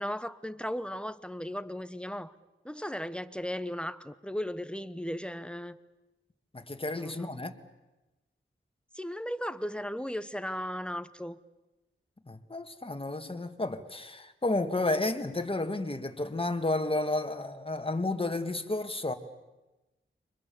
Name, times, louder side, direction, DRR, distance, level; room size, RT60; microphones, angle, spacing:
voice 1, 0.0-2.3 2.6-5.8 6.9-7.4 8.9-11.4, equal, 5° left, 1.0 m, -36 dB
voice 2, 6.5-7.5 12.3-19.1, left 2 dB, 25° left, 2.0 m, -31 dB
29.5 x 25.0 x 7.1 m
wide cardioid pair, 90°, 21 cm